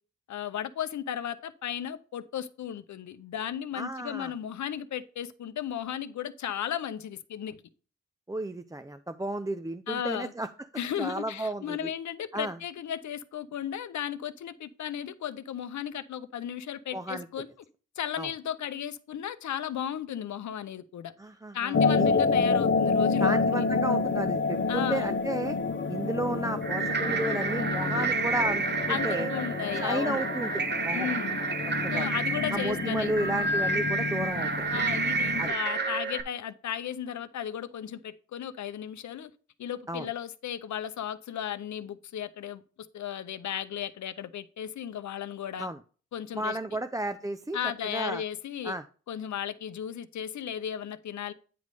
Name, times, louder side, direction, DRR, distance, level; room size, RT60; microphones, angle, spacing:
voice 1, 0.3-7.6 9.9-10.3 10.8-17.5 18.0-21.1 21.5-23.6 24.7-25.1 28.9-30.2 30.9-31.4 31.9-33.1 34.7-39.3 39.6-42.6 42.9-45.7 46.1-46.6 47.5-48.7 49.1-51.3, left 9 dB, 70° left, 0.6 m, -35 dB
voice 2, 3.8-4.3 8.3-10.5 11.0-11.9 12.3-12.6 16.9-17.3 18.2-18.3 21.2-22.1 23.2-25.6 25.9-29.3 29.8-31.1 31.8-32.1 32.5-34.6 35.4-35.5 39.9-40.1 45.6-45.8 46.3-47.6 47.8-48.2 48.6-48.8, right 1 dB, 10° right, 0.4 m, -33 dB
sound 1, 21.7-35.5, left 4 dB, 40° left, 0.9 m, -29 dB
sound 2, 26.6-36.2, right 4 dB, 35° right, 0.8 m, -30 dB
9.4 x 3.2 x 5.3 m
cardioid pair, 70°, 29 cm